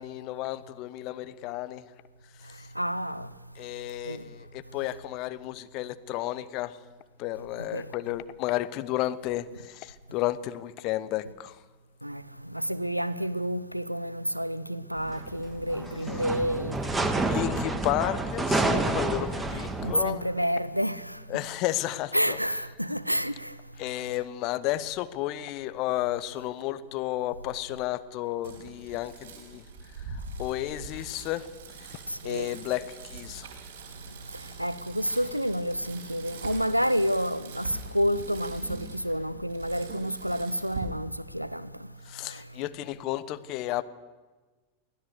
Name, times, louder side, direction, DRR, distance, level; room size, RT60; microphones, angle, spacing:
voice 1, 0.0-1.8 2.5-2.7 3.6-6.8 7.2-11.6 17.0-20.3 21.3-22.4 23.8-29.6 30.0-31.5 31.8-33.5 42.1-43.8, left 15 dB, 40° left, 0.9 m, -32 dB
voice 2, 2.8-3.3 4.1-4.2 7.7-7.9 12.0-12.2 12.5-16.8 19.5-21.4 22.1-23.5 32.1-32.5 34.6-41.7, equal, 90° right, 0.7 m, -29 dB
sound 1, 15.0-20.0, right 2 dB, 10° right, 1.7 m, -29 dB
Bicycle, 28.4-40.8, right 4 dB, 60° right, 4.3 m, -43 dB
24.0 x 16.5 x 6.7 m
figure-of-eight pair, 90°, 0 cm